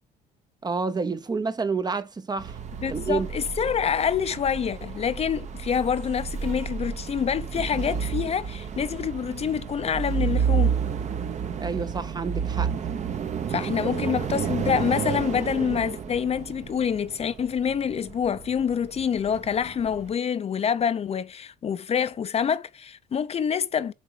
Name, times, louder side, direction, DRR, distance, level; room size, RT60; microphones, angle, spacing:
voice 1, 0.6-2.6 2.9-3.3 11.6-12.9 13.5-13.9, right 4 dB, 25° right, 0.8 m, -29 dB
sound 1, 2.4-20.1, right 7 dB, 45° right, 1.1 m, -31 dB
voice 2, 2.8-10.8 13.5-23.9, left 7 dB, 40° left, 0.7 m, -26 dB
7.5 x 3.9 x 5.0 m
cardioid pair, 110°, 17 cm